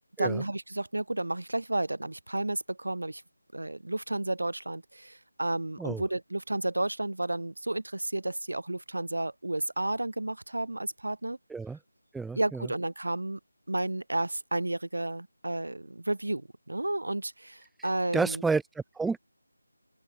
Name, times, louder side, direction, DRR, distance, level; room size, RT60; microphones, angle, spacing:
voice 1, 0.2-3.2 3.5-11.4 12.3-13.4 13.7-18.4, right 2 dB, 70° right, 7.8 m, -32 dB
voice 2, 12.1-12.7 18.1-19.2, right 4 dB, ahead, 1.2 m, -30 dB
open air
figure-of-eight pair, 160°, 0 cm